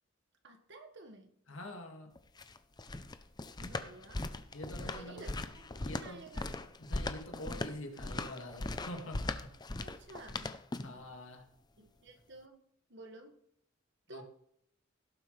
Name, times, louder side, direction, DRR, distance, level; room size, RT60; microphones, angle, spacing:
voice 1, 0.4-1.3 3.6-4.3 4.7-6.5 9.8-10.5 11.8-12.6 12.9-13.4 14.1-14.2, right 2 dB, 60° right, 5 dB, 1.7 m, -52 dB
voice 2, 1.5-2.1 4.5-5.3 5.8-6.3 6.8-9.5 10.8-11.5 14.1-14.2, left 1 dB, 85° left, 3 dB, 2.1 m, -46 dB
sound 1, 2.2-11.0, left 2 dB, 20° left, 0.6 m, -39 dB
17.5 x 7.7 x 3.3 m, 0.70 s
head